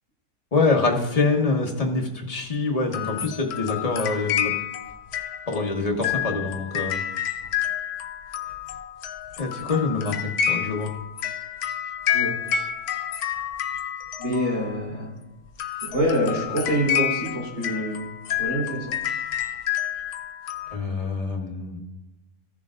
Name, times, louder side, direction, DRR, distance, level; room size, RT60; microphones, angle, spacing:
voice 1, 0.5-4.5 5.5-7.0 9.4-10.1 10.5-10.9 20.7-21.8, left 3 dB, 25° left, 1 dB, 1.3 m, -25 dB
sound 1, 2.9-14.9 15.5-20.8, left 10 dB, 85° left, 1.3 m, -29 dB
voice 2, 14.2-15.1 15.8-18.0 18.4-19.0, equal, 80° right, -5 dB, 4.1 m, -26 dB
15.5 x 6.9 x 2.5 m, 1.1 s
omnidirectional pair, 1.6 m